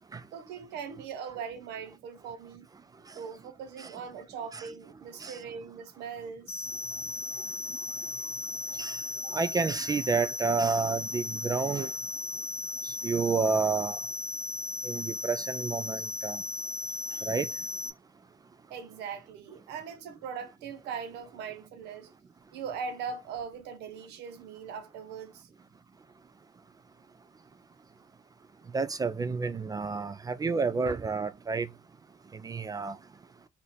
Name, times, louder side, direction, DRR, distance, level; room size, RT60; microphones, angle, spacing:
voice 1, 0.3-2.7 3.2-6.7 9.2-9.4 18.7-22.1 22.5-25.5, right 6 dB, 85° right, 0.9 m, -40 dB
sound 1, 6.5-17.9, left 3 dB, 75° left, 0.7 m, -36 dB
voice 2, 9.3-11.9 13.0-14.0 14.8-16.4 17.2-17.5 28.7-31.7 32.4-33.0, right 4 dB, 20° right, 0.3 m, -30 dB
3.2 x 2.6 x 4.2 m
cardioid pair, 110°, 17 cm